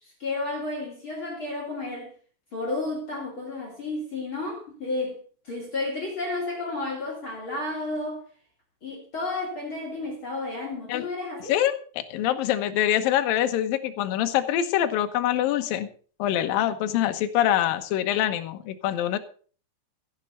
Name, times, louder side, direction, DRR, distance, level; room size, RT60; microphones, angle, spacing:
voice 1, 0.0-2.1 2.5-5.2 5.4-8.2 8.8-11.6, left 2 dB, 35° left, 2.8 m, -32 dB
voice 2, 11.5-15.9 16.2-19.2, left 11 dB, 70° left, 2.2 m, -24 dB
15.0 x 8.3 x 5.7 m
omnidirectional pair, 5.4 m